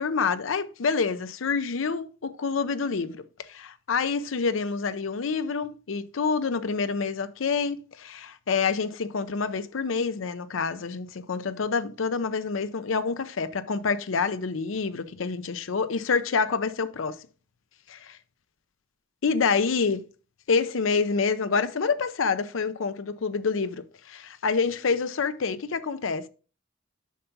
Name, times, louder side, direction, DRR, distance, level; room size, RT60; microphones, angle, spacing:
voice 1, 0.0-3.2 3.5-17.2 17.9-18.2 19.2-20.0 20.5-26.3, left 5 dB, 85° left, 0.6 m, -27 dB
7.3 x 5.7 x 4.0 m
head